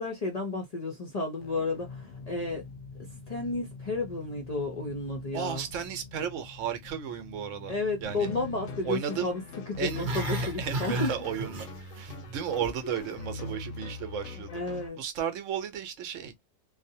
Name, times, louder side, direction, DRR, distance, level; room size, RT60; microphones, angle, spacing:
voice 1, 0.0-2.6 3.0-5.6 7.7-11.1 14.4-15.0, left 3 dB, 45° left, 0.5 m, -32 dB
sound 1, 1.4-10.1, left 4 dB, 70° left, 0.8 m, -47 dB
voice 2, 5.3-8.3 8.8-9.3 9.8-10.1 10.3-11.7 11.9-14.5 15.0-16.3, right 8 dB, 75° right, 1.0 m, -34 dB
sound 2, 8.0-14.9, left 3 dB, 85° left, 1.1 m, -41 dB
Growling, 9.8-12.1 12.4-12.8 13.1-13.2, right 1 dB, 45° right, 0.8 m, -33 dB
2.5 x 2.0 x 2.7 m
omnidirectional pair, 1.3 m